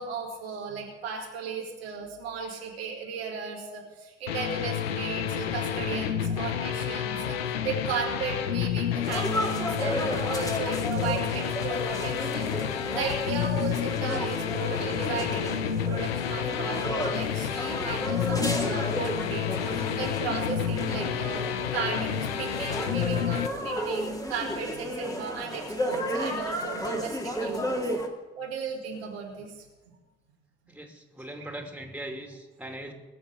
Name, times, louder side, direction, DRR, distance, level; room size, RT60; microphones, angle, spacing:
voice 1, 0.0-7.4 7.6-12.5 12.9-21.4 21.7-27.9 28.4-29.5, right 5 dB, 80° right, -1 dB, 2.2 m, -35 dB
sound 1, 4.3-23.5, left 9 dB, 85° left, 0.7 m, -30 dB
sound 2, 9.0-28.1, equal, 10° left, 2.5 m, -33 dB
voice 2, 30.7-32.9, right 1 dB, 5° right, 3 dB, 2.7 m, -40 dB
21.5 x 7.2 x 6.6 m, 1.2 s
figure-of-eight pair, 40°, 30 cm